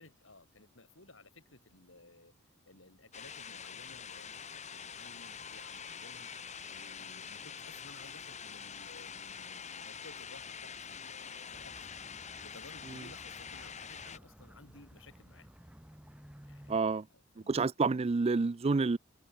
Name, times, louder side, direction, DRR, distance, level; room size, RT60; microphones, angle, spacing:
voice 1, 0.0-2.3 2.7-6.3 6.7-11.9 12.4-15.5 16.4-17.6, left 2 dB, 70° left, 4.8 m, -57 dB
sound 1, 3.1-14.2, left 7 dB, 35° left, 2.3 m, -45 dB
sound 2, 11.5-16.8, equal, 5° right, 1.4 m, -55 dB
voice 2, 16.7-17.0 17.5-19.0, right 4 dB, 30° right, 0.4 m, -28 dB
head